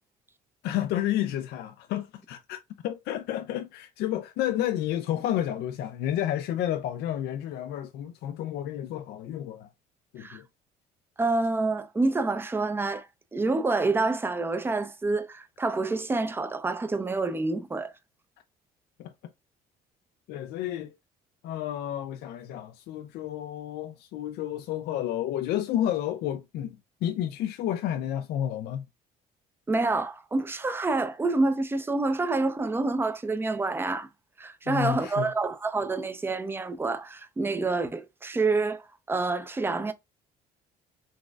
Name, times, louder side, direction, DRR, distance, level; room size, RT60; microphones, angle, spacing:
voice 1, 0.6-9.7 10.1-10.5 19.0-19.3 20.3-20.9 21.4-28.9 34.7-35.3, left 11 dB, 75° left, 0.4 m, -31 dB
voice 2, 11.2-13.1 13.3-17.9 29.7-34.1 34.4-38.8 39.1-39.9, right 3 dB, 15° right, 0.5 m, -27 dB
3.9 x 2.5 x 2.3 m
cardioid pair, 110°, 17 cm